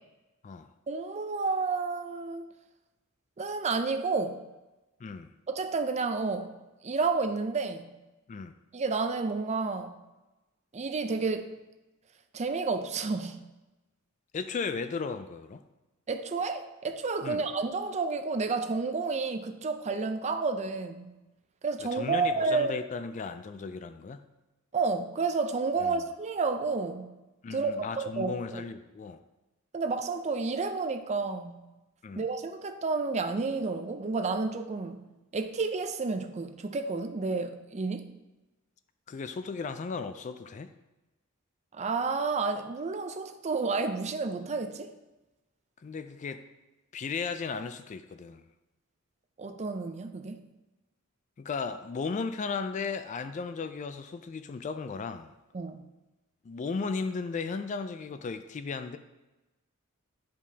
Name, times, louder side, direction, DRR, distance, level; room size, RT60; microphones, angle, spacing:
voice 1, 0.9-2.5 3.4-4.4 5.5-6.5 6.8-8.0 8.7-9.9 10.7-11.6 12.3-13.4 16.1-21.1 21.6-22.7 24.7-27.1 27.5-28.6 29.7-31.6 32.2-35.1 35.3-38.1 41.7-44.9 49.4-50.4 55.5-55.8, right 4 dB, 30° right, 8 dB, 0.5 m, -30 dB
voice 2, 14.3-15.6 17.2-17.4 21.8-24.3 25.8-26.0 27.4-29.2 32.0-32.2 39.1-40.7 45.8-46.4 46.9-48.4 51.4-55.3 56.4-59.0, left 5 dB, 35° left, 9 dB, 0.3 m, -35 dB
10.5 x 5.1 x 2.8 m, 1.1 s
head